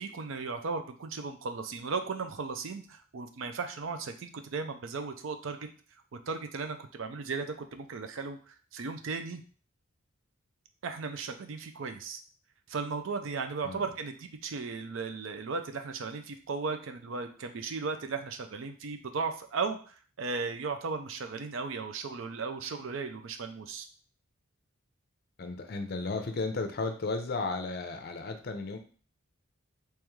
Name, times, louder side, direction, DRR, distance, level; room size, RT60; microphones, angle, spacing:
voice 1, 0.0-5.6 6.3-9.4 10.8-12.2 12.7-23.9, right 4 dB, 65° right, 7 dB, 0.5 m, -36 dB
voice 2, 25.4-28.8, left 3 dB, 45° left, 6 dB, 0.5 m, -34 dB
3.5 x 3.0 x 3.1 m, 0.40 s
head